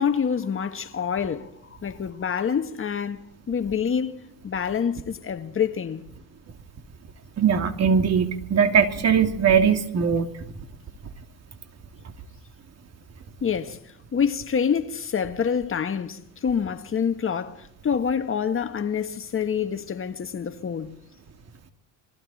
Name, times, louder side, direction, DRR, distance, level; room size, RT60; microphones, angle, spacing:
voice 1, 0.0-1.5 1.8-6.0 13.4-13.8 14.1-20.9, left 7 dB, 35° left, 1.7 m, -27 dB
voice 2, 7.4-10.3, right 7 dB, 40° right, 2.7 m, -20 dB
28.0 x 21.5 x 4.3 m
supercardioid pair, 100°, 39 cm